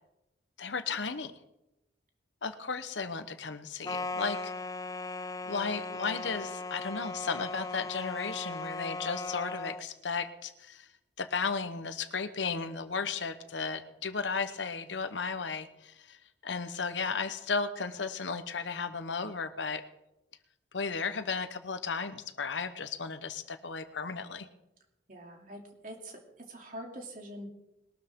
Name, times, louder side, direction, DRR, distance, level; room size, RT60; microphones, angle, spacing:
voice 1, 0.6-1.3 2.4-4.5 5.4-10.9 11.2-16.2 16.4-19.8 20.7-24.5, left 5 dB, 85° left, 10 dB, 1.0 m, -34 dB
sound 1, 3.8-9.8, left 3 dB, 20° left, 0.4 m, -38 dB
voice 2, 25.1-26.2 26.5-27.5, right 1 dB, 50° right, 1 dB, 2.9 m, -44 dB
21.0 x 12.5 x 3.7 m, 0.90 s
head